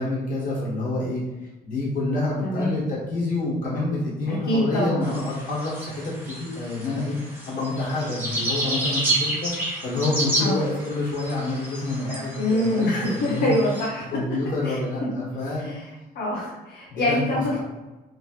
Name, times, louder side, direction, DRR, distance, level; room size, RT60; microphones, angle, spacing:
voice 1, 0.0-7.2 7.5-13.5 14.1-15.7 16.9-17.6, left 2 dB, 50° left, -6 dB, 1.2 m, -28 dB
voice 2, 2.4-2.7 4.5-5.0 10.4-10.6 12.4-14.0 14.6-14.8 15.6-15.8 16.1-17.6, left 1 dB, 85° left, -5 dB, 0.7 m, -24 dB
sound 1, 5.0-13.9, right 1 dB, 10° right, 0.9 m, -30 dB
3.0 x 2.8 x 2.4 m, 1.1 s
cardioid pair, 145°, 17 cm